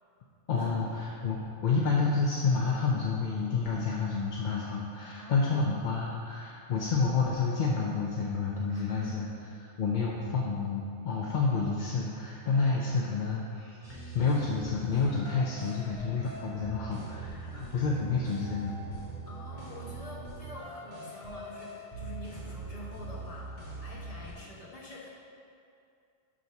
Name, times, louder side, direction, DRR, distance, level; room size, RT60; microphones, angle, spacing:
voice 1, 0.5-18.8, left 4 dB, 50° left, -3 dB, 0.6 m, -29 dB
voice 2, 8.7-9.3 19.3-23.5 23.8-25.1, left 2 dB, 35° left, -6 dB, 1.3 m, -46 dB
sound 1, 13.8-24.3, right 3 dB, 30° right, 1.9 m, -42 dB
6.2 x 4.0 x 5.8 m, 2.5 s
omnidirectional pair, 1.2 m